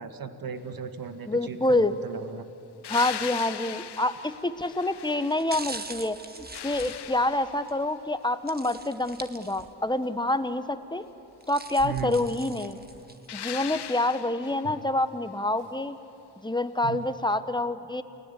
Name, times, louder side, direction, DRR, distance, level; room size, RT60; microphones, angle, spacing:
voice 1, 0.0-2.5 11.8-12.3 16.8-17.1, right 6 dB, 55° right, 9 dB, 1.9 m, -36 dB
voice 2, 1.3-1.9 2.9-11.0 11.5-12.8 13.3-16.0 16.4-18.0, left 2 dB, 10° left, 11 dB, 1.4 m, -27 dB
sound 1, 2.8-5.8 6.2-7.9 13.3-14.7 17.3-17.4, left 10 dB, 65° left, 1.0 m, -39 dB
sound 2, 4.3-4.5 5.2-7.8 8.5-9.9 10.3-10.4 11.2-13.4 13.8-13.9, right 2 dB, 20° right, 1.7 m, -42 dB
29.5 x 18.5 x 8.6 m, 3.0 s
supercardioid pair, 40°, 42 cm